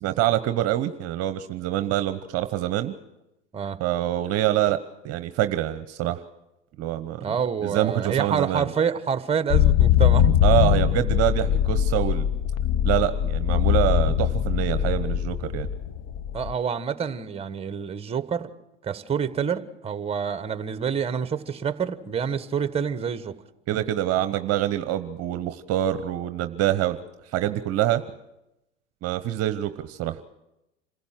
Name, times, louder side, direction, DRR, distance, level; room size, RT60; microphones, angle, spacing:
voice 1, 0.0-2.9 3.8-4.8 5.0-6.2 6.8-7.2 7.6-8.7 10.4-12.3 12.8-15.7 23.7-27.0 27.2-28.0 29.0-30.2, right 13 dB, 40° right, 1.0 m, -25 dB
voice 2, 7.2-10.3 16.3-18.5 18.8-23.3, right 7 dB, 15° right, 1.3 m, -27 dB
sound 1, 9.5-16.5, left 10 dB, 45° left, 1.0 m, -21 dB
27.0 x 16.0 x 7.6 m
hypercardioid pair, 95°, 36 cm